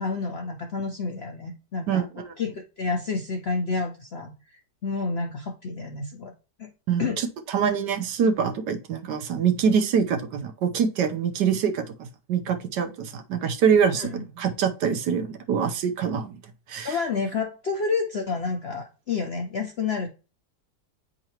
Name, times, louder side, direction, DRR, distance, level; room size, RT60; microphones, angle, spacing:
voice 1, 0.0-2.0 2.4-6.3 6.6-6.7 7.0-7.2 13.9-14.2 16.8-20.1, left 4 dB, 60° left, 0.6 m, -29 dB
voice 2, 1.9-2.2 6.9-16.4 16.7-17.0, right 7 dB, 75° right, 1.4 m, -25 dB
8.9 x 3.8 x 2.9 m
omnidirectional pair, 1.9 m